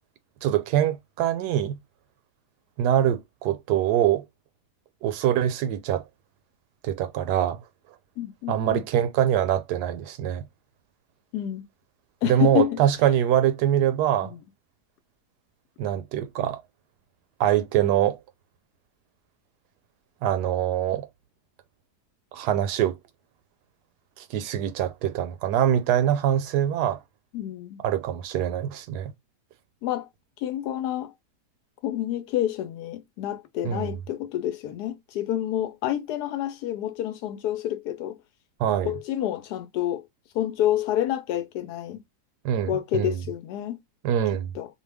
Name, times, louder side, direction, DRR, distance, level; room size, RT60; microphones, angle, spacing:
voice 1, 0.4-1.8 2.8-4.2 5.0-6.0 6.8-7.6 8.5-10.5 12.2-14.3 15.8-16.6 17.4-18.2 20.2-21.1 22.3-23.0 24.2-27.0 27.8-29.1 33.6-33.9 38.6-39.0 42.4-43.1 44.0-44.5, right 10 dB, 80° right, 1.1 m, -24 dB
voice 2, 8.2-8.8 11.3-11.6 12.2-12.8 14.2-14.4 27.3-27.8 29.8-30.1 30.4-31.1 31.8-38.2 38.8-40.0 40.3-42.0 42.7-43.8 44.5-44.7, left 12 dB, 80° left, 1.1 m, -28 dB
2.7 x 2.2 x 3.3 m
omnidirectional pair, 1.7 m